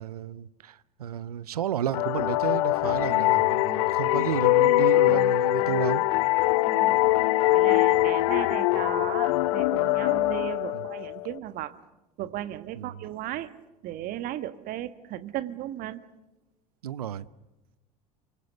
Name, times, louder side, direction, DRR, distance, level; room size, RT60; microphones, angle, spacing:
voice 1, 0.0-6.0 10.7-10.8 12.7-12.9 16.8-17.3, right 10 dB, 75° right, 0.8 m, -32 dB
sound 1, 1.9-11.3, left 17 dB, 60° left, 0.9 m, -23 dB
voice 2, 6.6-7.1 7.5-11.8 12.2-13.5 13.8-16.0, right 13 dB, 50° right, 1.6 m, -36 dB
28.5 x 25.0 x 6.8 m
figure-of-eight pair, 70°, 19 cm